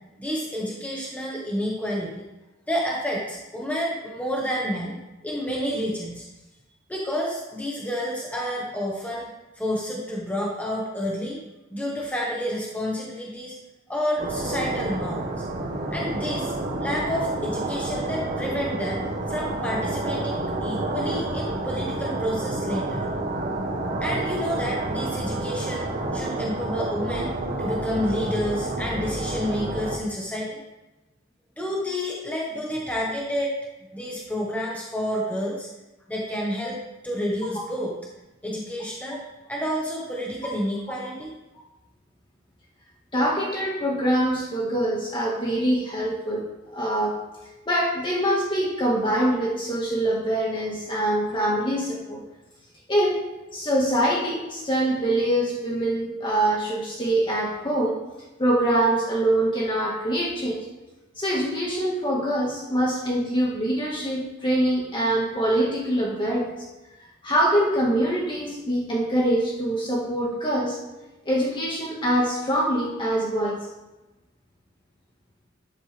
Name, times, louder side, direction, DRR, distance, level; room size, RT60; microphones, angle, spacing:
voice 1, 0.2-2.2 2.7-6.3 6.9-11.4 11.7-13.5 13.9-15.3 15.9-16.5 16.8-23.1 24.0-27.3 27.6-30.6 31.6-33.5 33.9-35.7 36.1-37.9 38.4-41.3, equal, 5° left, -4 dB, 1.5 m, -29 dB
sound 1, 14.2-30.0, right 2 dB, 50° right, 1.8 m, -29 dB
voice 2, 43.1-46.4 46.7-47.2 47.7-52.2 52.9-53.2 53.5-58.0 58.4-60.7 61.2-66.5 67.2-70.8 71.3-73.6, right 1 dB, 25° left, -3 dB, 1.9 m, -24 dB
13.0 x 10.5 x 3.5 m, 1.1 s
head